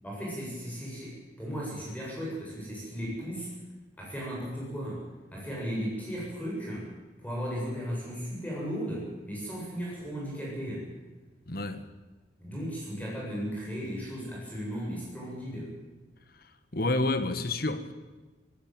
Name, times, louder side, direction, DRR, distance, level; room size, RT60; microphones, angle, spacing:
voice 1, 0.0-3.5 4.0-5.0 5.3-6.9 7.2-10.9 12.4-15.7, equal, 10° left, 7.6 m, -36 dB
voice 2, 11.5-11.9 16.7-17.9, left 2 dB, 55° left, 1.6 m, -29 dB
18.0 x 18.0 x 9.2 m
head